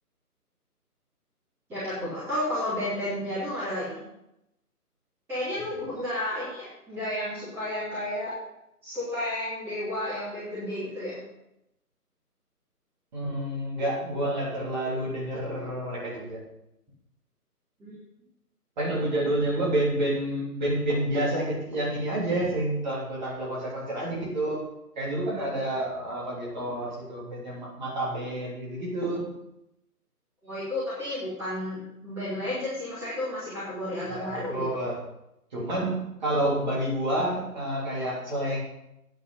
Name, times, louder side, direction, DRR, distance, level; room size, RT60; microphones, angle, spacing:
voice 1, 1.7-4.0 5.3-8.3 8.8-11.2 17.8-18.0 30.4-34.6, left 1 dB, 5° right, -13 dB, 2.5 m, -32 dB
voice 2, 13.1-16.4 18.8-24.6 24.9-29.3 34.0-35.0 35.5-38.6, right 1 dB, 30° right, -5 dB, 3.4 m, -29 dB
9.5 x 9.2 x 5.6 m, 0.86 s
hypercardioid pair, 165°, 47 cm